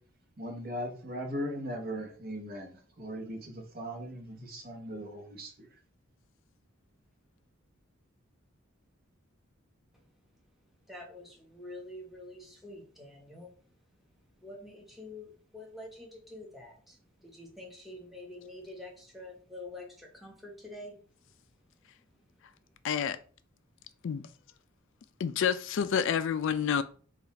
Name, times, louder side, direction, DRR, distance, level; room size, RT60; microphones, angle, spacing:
voice 1, 0.4-5.7, equal, 45° right, 1.0 m, -39 dB
voice 2, 10.9-13.5 14.4-17.0 17.2-21.0, left 1 dB, ahead, 1.0 m, -46 dB
voice 3, 22.8-23.2 24.0-24.3 25.2-26.8, left 7 dB, 60° left, 0.3 m, -28 dB
3.9 x 2.4 x 4.2 m
head